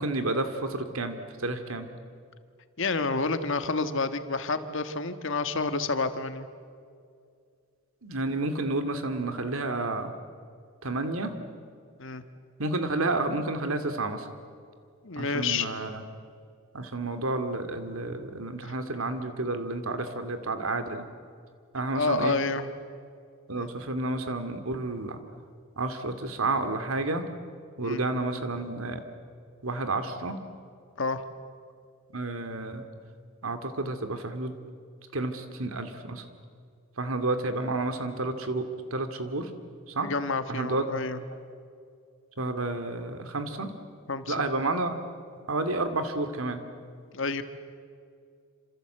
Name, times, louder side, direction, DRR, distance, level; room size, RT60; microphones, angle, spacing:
voice 1, 0.0-1.9 8.0-10.1 10.8-11.4 12.6-14.3 15.2-16.0 16.7-21.1 21.7-22.4 23.5-25.2 25.8-27.3 27.8-29.0 29.6-30.4 32.1-32.8 33.4-34.5 35.1-36.2 37.0-39.5 39.9-40.1 40.5-40.9 42.4-43.7 44.3-45.0 45.5-46.6, right 2 dB, 85° right, 8 dB, 2.4 m, -30 dB
voice 2, 2.8-6.5 12.0-12.2 15.0-15.7 21.9-22.7 23.5-23.7 27.8-28.0 31.0-31.2 40.0-41.2 44.1-44.3 47.1-47.4, left 3 dB, 65° left, 10 dB, 1.6 m, -29 dB
27.5 x 26.5 x 7.9 m, 2.3 s
head